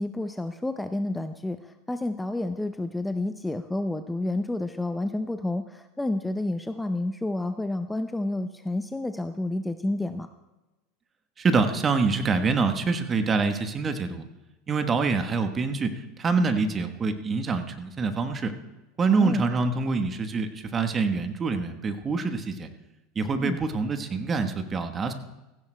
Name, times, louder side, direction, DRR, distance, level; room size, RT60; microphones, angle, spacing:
voice 1, 0.0-1.6 1.9-10.3 19.1-19.4 23.4-23.6, left 2 dB, 10° left, 9 dB, 0.6 m, -30 dB
voice 2, 11.4-14.3 14.7-18.5 19.0-22.7 23.1-25.1, right 4 dB, 30° right, 8 dB, 1.2 m, -26 dB
16.5 x 15.5 x 2.2 m, 1.0 s
hypercardioid pair, 90°, 0 cm